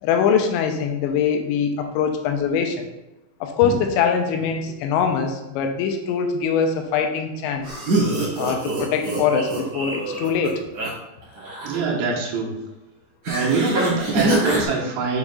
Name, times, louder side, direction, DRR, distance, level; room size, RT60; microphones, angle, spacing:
voice 1, 0.0-2.9 3.4-7.8 8.4-10.6, left 6 dB, 90° left, 5 dB, 3.0 m, -22 dB
sound 1, 7.6-10.9 11.2-11.8 13.2-14.7, right 1 dB, 45° right, 2.5 m, -24 dB
voice 2, 11.6-12.5 13.3-15.2, right 4 dB, 85° right, -3 dB, 3.4 m, -24 dB
6.5 x 6.2 x 2.4 m, 0.95 s
omnidirectional pair, 5.1 m